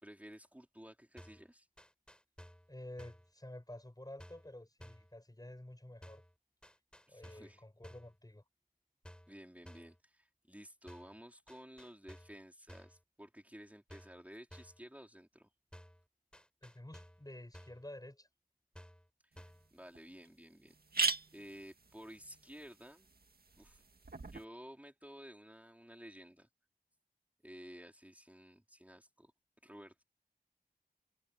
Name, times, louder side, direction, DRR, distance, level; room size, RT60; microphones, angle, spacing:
voice 1, 0.0-1.7 7.1-7.6 9.3-15.5 19.2-20.8 21.3-23.1 23.6-23.8 24.3-26.5 27.4-29.3 29.6-30.0, equal, 10° right, 3.7 m, -54 dB
sound 1, 1.2-1.5 1.8-2.7 3.0-3.3 4.2-4.5 4.8-5.1 6.0-6.3 6.6-7.6 7.8-8.2 9.0-9.4 9.7-10.0 10.9-11.2 11.5-12.4 12.7-13.0 13.9-14.2 14.5-14.8 15.7-16.0 16.3-17.3 17.5-17.9 18.7-19.1 19.4-19.7, equal, 5° left, 8.0 m, -55 dB
voice 2, 2.7-6.2 7.1-8.4 16.6-18.3, left 1 dB, 25° left, 5.8 m, -50 dB
sound 2, 19.4-19.5 19.9-20.0 20.2-20.3 20.7-24.4, right 4 dB, 90° right, 1.8 m, -40 dB
wide cardioid pair, 50°, 16 cm